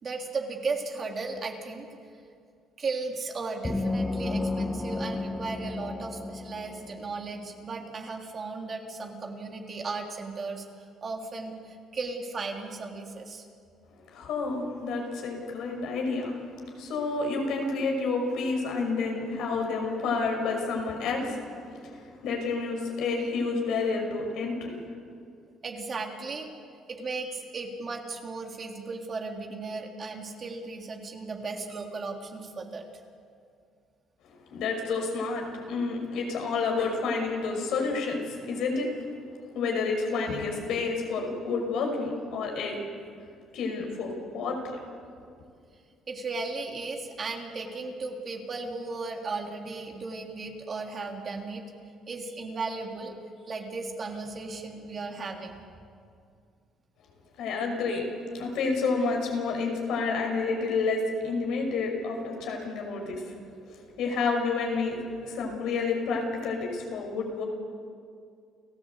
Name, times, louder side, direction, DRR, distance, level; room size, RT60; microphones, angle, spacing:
voice 1, 0.0-2.0 2.8-10.6 11.0-13.5 25.6-26.5 26.9-32.8 46.1-51.7 52.1-53.1 53.5-55.6, right 3 dB, 40° right, 2 dB, 3.3 m, -36 dB
sound 1, 3.6-7.2, left 2 dB, 15° left, 1.3 m, -32 dB
voice 2, 14.1-16.4 16.7-24.8 34.5-38.9 39.5-42.8 43.5-44.8 57.4-63.3 63.7-67.4, left 4 dB, 75° left, 2 dB, 5.7 m, -29 dB
29.5 x 15.0 x 8.2 m, 2.3 s
cardioid pair, 90°, 0 cm